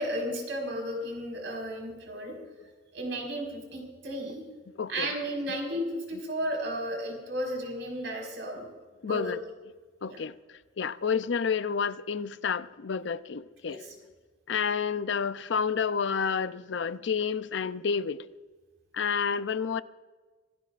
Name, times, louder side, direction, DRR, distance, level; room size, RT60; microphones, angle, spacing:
voice 1, 0.0-2.3 2.9-4.4 4.9-8.7 9.0-9.3 10.0-10.2 13.7-13.9, equal, 70° right, 4.8 m, -34 dB
voice 2, 4.8-5.1 9.0-9.4 10.0-10.3 10.8-13.8 14.5-18.3 18.9-19.8, left 6 dB, 65° left, 0.5 m, -29 dB
26.0 x 17.0 x 2.5 m
head